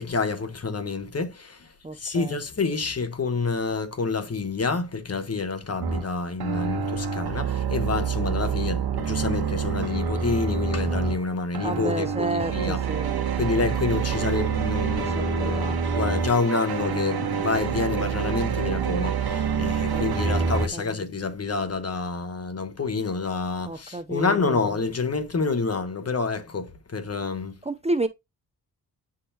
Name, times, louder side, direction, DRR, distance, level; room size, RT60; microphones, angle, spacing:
voice 1, 0.0-12.8 13.4-27.5, left 4 dB, 35° left, 1.3 m, -28 dB
voice 2, 1.8-2.4 11.6-13.6 14.9-15.8 19.9-20.9 23.7-24.6 27.6-28.1, right 2 dB, 15° right, 0.6 m, -32 dB
sound 1, 5.8-6.1 6.4-11.2 11.5-20.7, right 6 dB, 65° right, 1.3 m, -27 dB
9.5 x 3.7 x 2.9 m
cardioid pair, 65°, 40 cm